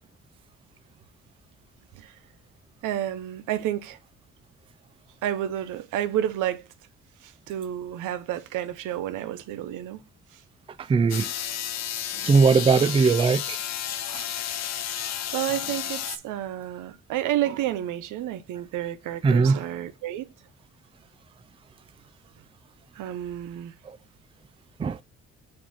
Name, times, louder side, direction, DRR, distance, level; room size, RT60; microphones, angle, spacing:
voice 1, 2.8-4.0 5.2-6.7 7.2-10.4 12.2-12.3 12.8-13.1 14.1-14.3 15.3-20.3 22.9-23.7, right 12 dB, 90° right, 0.7 m, -31 dB
voice 2, 10.9-11.3 12.3-13.6 19.2-19.6 24.8-25.0, right 5 dB, 20° right, 0.3 m, -19 dB
sound 1, 11.1-16.2, left 10 dB, 60° left, 0.7 m, -32 dB
7.4 x 2.5 x 5.5 m
cardioid pair, 90°, 30 cm